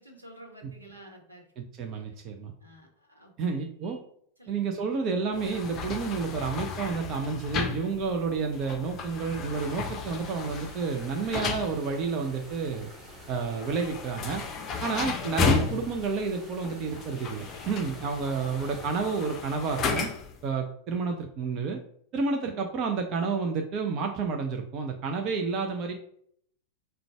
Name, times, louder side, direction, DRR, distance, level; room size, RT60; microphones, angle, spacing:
voice 1, 0.0-1.4 1.9-2.0 2.6-3.5 4.4-4.7, right 1 dB, 85° right, 1 dB, 0.9 m, -51 dB
voice 2, 1.6-2.5 3.4-4.0 4.5-12.9 13.3-14.4 14.8-20.1 20.4-21.8 22.1-25.9, right 5 dB, 35° right, 3 dB, 0.4 m, -30 dB
sound 1, 5.3-20.4, left 5 dB, 30° left, 0.5 m, -34 dB
sound 2, 9.5-19.4, right 1 dB, 10° right, 1.5 m, -49 dB
3.8 x 2.2 x 4.4 m, 0.65 s
figure-of-eight pair, 90°, 0 cm